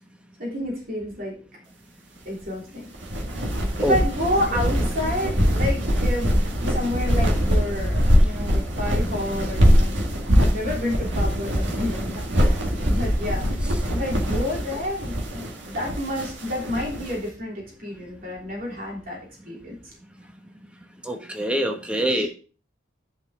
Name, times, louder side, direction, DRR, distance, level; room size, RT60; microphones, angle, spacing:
voice 1, 0.4-1.4 2.2-2.9 3.8-13.5 13.9-19.7 21.9-22.3, left 1 dB, 50° right, -2 dB, 3.2 m, -30 dB
sound 1, 2.9-17.1, equal, 80° right, 2.0 m, -22 dB
voice 2, 21.1-22.3, right 1 dB, 5° right, 4 dB, 1.1 m, -24 dB
10.5 x 5.4 x 3.6 m, 0.38 s
head